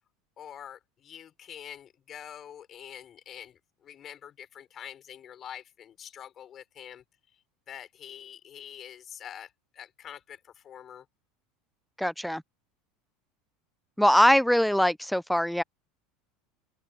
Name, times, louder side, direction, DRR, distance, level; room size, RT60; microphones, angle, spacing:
voice 1, 0.4-7.0 7.7-11.1, left 9 dB, 40° left, 5.3 m, -45 dB
voice 2, 12.0-12.4 14.0-15.6, equal, ahead, 0.4 m, -22 dB
open air
hypercardioid pair, 90°, 0 cm